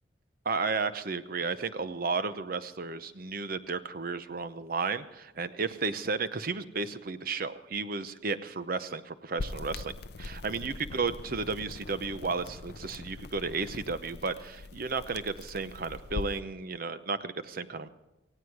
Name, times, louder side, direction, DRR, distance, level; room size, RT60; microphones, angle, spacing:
voice 1, 0.4-17.9, right 4 dB, 55° right, 12 dB, 0.8 m, -33 dB
sound 1, 9.4-16.4, left 3 dB, 60° left, 0.6 m, -42 dB
17.5 x 16.5 x 4.8 m, 0.98 s
head